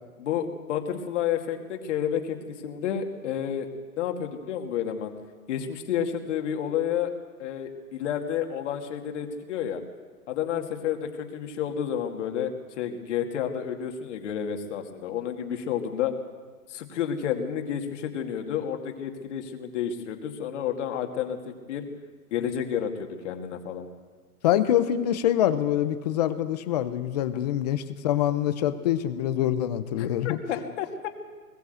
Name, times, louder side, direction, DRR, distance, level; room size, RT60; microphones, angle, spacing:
voice 1, 0.2-3.7 4.0-5.1 5.5-7.1 7.4-9.8 10.3-16.1 16.7-21.9 22.3-23.9 30.0-31.1, left 9 dB, 45° left, 4 dB, 2.4 m, -30 dB
voice 2, 24.4-30.4, left 11 dB, 25° left, 12 dB, 0.7 m, -25 dB
21.0 x 15.5 x 8.1 m, 1.5 s
hypercardioid pair, 150°, 48 cm